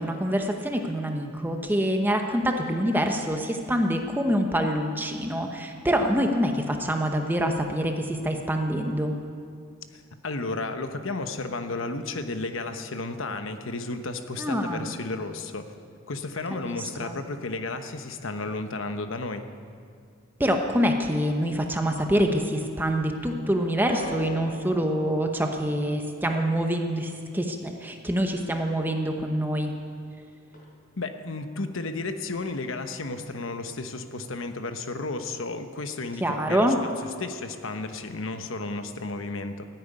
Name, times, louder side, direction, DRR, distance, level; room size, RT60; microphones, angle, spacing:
voice 1, 0.0-9.1 14.4-15.0 16.6-17.2 20.4-29.7 36.2-36.8, equal, 10° right, 3 dB, 0.9 m, -26 dB
voice 2, 9.9-15.7 16.1-19.4 31.0-36.9 37.2-39.7, left 3 dB, 80° left, 8 dB, 1.1 m, -33 dB
Inside piano contact mic key strike, 23.9-30.2 30.4-31.1 31.8-31.9, equal, 45° left, 4.3 m, -45 dB
15.5 x 9.4 x 9.5 m, 2.2 s
head